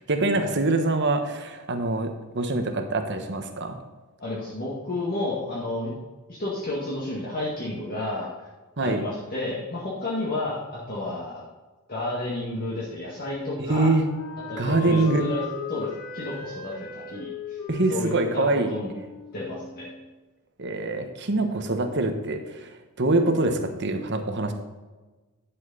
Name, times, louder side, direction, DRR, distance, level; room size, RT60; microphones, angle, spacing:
voice 1, 0.1-3.8 8.8-9.0 13.6-14.1 14.6-15.3 17.7-18.7 20.6-22.7 23.0-24.5, right 2 dB, 55° right, 6 dB, 1.2 m, -24 dB
voice 2, 4.2-5.9 6.3-8.3 8.8-11.4 11.9-13.9 14.5-15.4 15.7-15.9 16.1-17.6 17.9-19.0 19.3-19.9, left 2 dB, 45° left, -7 dB, 2.0 m, -31 dB
Wind instrument woodwind instrument, 13.3-20.1, left 5 dB, 70° left, 2.8 m, -38 dB
10.5 x 7.7 x 4.2 m, 1.2 s
head